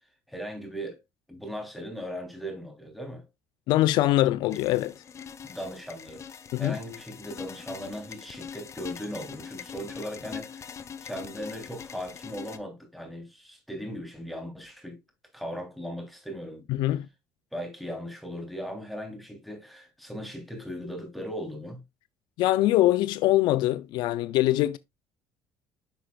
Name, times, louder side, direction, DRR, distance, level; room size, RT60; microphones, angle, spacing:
voice 1, 0.3-1.0 1.3-3.3 5.4-15.0 15.3-16.7 17.5-21.8, equal, ahead, 3.4 m, -38 dB
voice 2, 3.7-4.9 6.5-6.8 16.7-17.1 22.4-24.8, left 15 dB, 70° left, 0.5 m, -23 dB
sound 1, 4.5-12.6, left 7 dB, 40° left, 0.9 m, -43 dB
10.0 x 5.8 x 2.4 m
cardioid pair, 100°, 8 cm